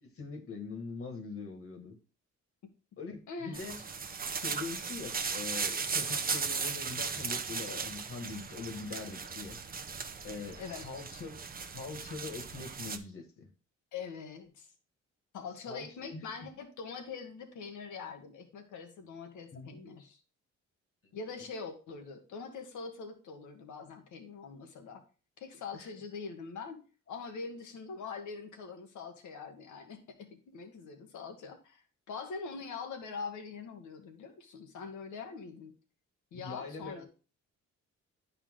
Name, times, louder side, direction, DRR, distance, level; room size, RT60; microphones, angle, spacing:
voice 1, 0.0-2.0 3.0-3.8 4.3-9.6 10.2-13.5 15.7-16.2 19.5-19.8 21.0-21.2 25.7-25.9 36.3-37.1, left 4 dB, 45° left, 5 dB, 1.9 m, -43 dB
voice 2, 3.3-3.7 10.6-10.9 13.9-14.7 15.3-20.2 21.1-25.0 25.4-26.8 27.1-35.7 36.3-37.1, left 5 dB, 75° left, 5 dB, 1.7 m, -43 dB
sound 1, 3.5-13.0, right 5 dB, 30° right, 0.8 m, -37 dB
10.0 x 4.4 x 3.8 m, 0.35 s
cardioid pair, 90°, 30 cm